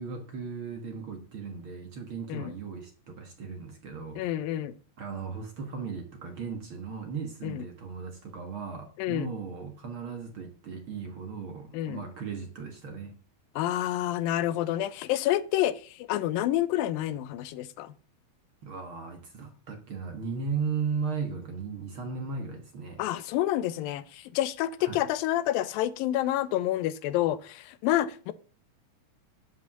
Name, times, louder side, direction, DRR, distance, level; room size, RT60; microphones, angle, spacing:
voice 1, 0.0-4.3 5.0-13.1 18.6-23.0 24.8-25.0, right 5 dB, 55° right, 5 dB, 1.5 m, -36 dB
voice 2, 4.2-4.8 7.4-7.6 9.0-9.3 11.7-12.0 13.6-17.9 23.0-28.3, left 13 dB, 85° left, 15 dB, 2.4 m, -28 dB
11.5 x 5.5 x 7.2 m, 0.40 s
omnidirectional pair, 4.1 m